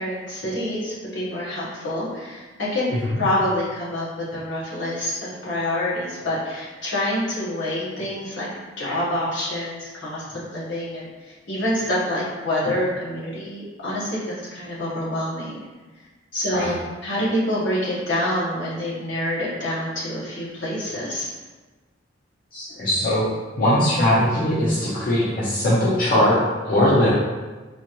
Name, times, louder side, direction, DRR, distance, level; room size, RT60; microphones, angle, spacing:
voice 1, 0.0-2.9 3.2-4.1 4.3-8.5 8.8-11.1 11.5-15.6 16.3-21.3, left 1 dB, 70° left, -7 dB, 1.3 m, -26 dB
voice 2, 2.9-3.2 16.5-16.7 22.5-23.2 23.6-26.4 26.6-27.1, left 1 dB, 50° left, -9 dB, 0.8 m, -20 dB
4.1 x 2.5 x 3.0 m, 1.3 s
head